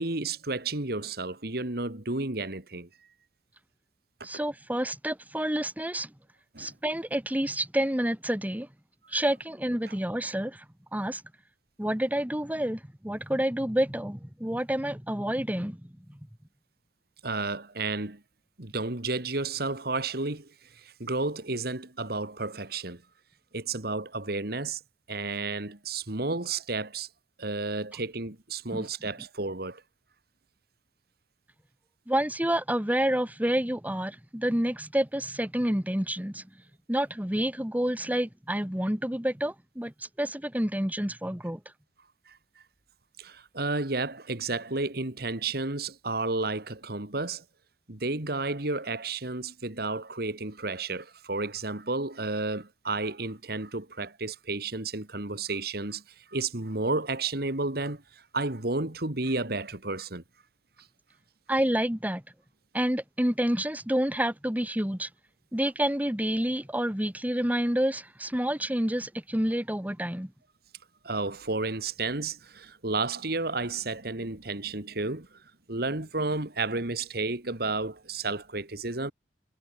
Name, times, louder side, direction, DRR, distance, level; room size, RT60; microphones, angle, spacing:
voice 1, 0.0-2.9 6.5-6.7 9.9-10.0 17.2-18.2 18.6-23.0 23.5-24.8 25.1-27.1 27.4-29.8 42.3-42.4 43.2-47.4 47.9-56.0 56.3-58.0 58.3-60.2 71.0-75.3 75.7-79.1, right 3 dB, 60° right, 2.3 m, -32 dB
voice 2, 4.2-6.1 6.6-8.7 9.1-10.7 10.9-11.2 11.8-15.8 28.7-28.8 32.1-36.4 36.9-39.9 40.2-41.6 61.5-62.2 62.7-65.1 65.5-70.3, right 1 dB, 10° right, 1.8 m, -28 dB
head